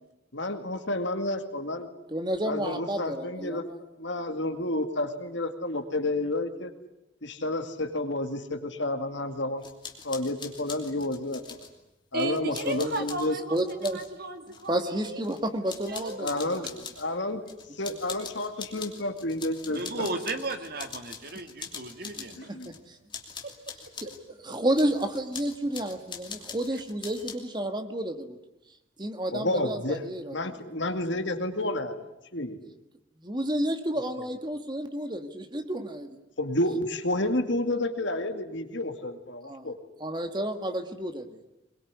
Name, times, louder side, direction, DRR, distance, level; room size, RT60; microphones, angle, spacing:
voice 1, 0.3-1.9 2.4-3.6 4.0-6.7 7.2-9.6 10.0-11.6 12.1-13.4 16.2-16.7 17.0-17.4 17.8-20.1 22.4-22.7 29.3-30.0 30.3-32.1 32.3-32.6 36.4-39.8, left 1 dB, 60° left, 7 dB, 2.2 m, -30 dB
voice 2, 2.1-3.8 12.8-12.9 13.5-14.0 14.7-16.7 17.9-18.0 22.5-23.0 24.0-24.1 24.4-28.4 29.0-30.5 33.2-36.2 39.5-39.7 40.0-41.4, right 1 dB, 20° right, 7 dB, 1.8 m, -31 dB
sound 1, 9.6-11.7 12.2-14.1 14.5-15.4 15.7-17.1 17.5-22.8 23.1-24.2 24.7-27.4, left 6 dB, 25° left, 2.9 m, -43 dB
voice 3, 12.1-13.6 13.9-14.8 15.0-15.2 15.9-16.7 19.7-22.5 23.4-23.5, right 2 dB, 50° right, 7 dB, 2.4 m, -35 dB
22.5 x 22.0 x 9.7 m, 0.92 s
head